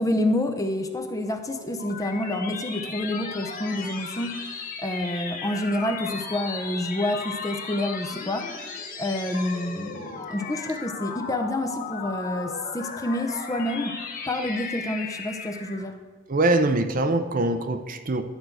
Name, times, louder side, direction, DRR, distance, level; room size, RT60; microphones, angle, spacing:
voice 1, 0.0-14.0 14.3-16.0, left 1 dB, 15° left, 6 dB, 0.6 m, -28 dB
sound 1, 1.3-15.9, left 4 dB, 40° left, 1.2 m, -36 dB
voice 2, 16.3-18.2, right 2 dB, 40° right, 8 dB, 0.6 m, -23 dB
11.5 x 4.7 x 7.7 m, 1.4 s
head